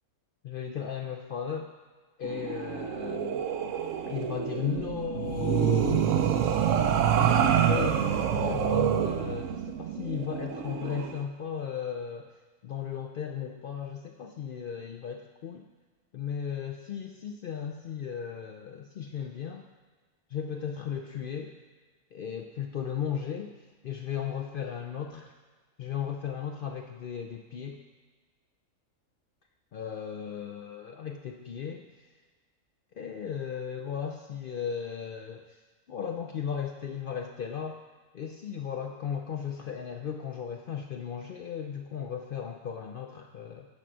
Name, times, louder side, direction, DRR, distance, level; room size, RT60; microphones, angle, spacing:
voice 1, 0.4-1.7 2.2-3.4 4.1-6.2 7.1-8.1 8.3-12.3 12.6-15.6 16.1-19.7 20.3-21.5 22.1-25.3 25.8-27.8 29.7-32.1 32.9-35.6 35.9-37.8 38.1-43.7, left 7 dB, 70° left, 3 dB, 0.5 m, -36 dB
sound 1, 2.2-11.2, right 9 dB, 70° right, 0.9 m, -27 dB
8.5 x 4.5 x 6.2 m, 1.4 s
omnidirectional pair, 1.5 m